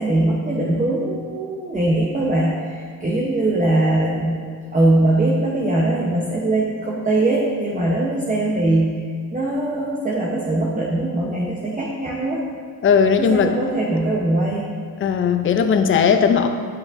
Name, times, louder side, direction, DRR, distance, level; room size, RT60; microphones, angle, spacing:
voice 1, 0.0-4.4 4.7-9.0 9.3-12.4 13.2-14.7, right 2 dB, 20° right, -3 dB, 0.8 m, -21 dB
voice 2, 12.8-13.6 15.0-16.5, left 6 dB, 30° left, 7 dB, 0.5 m, -17 dB
8.5 x 5.9 x 2.6 m, 2.1 s
cardioid pair, 70°, 44 cm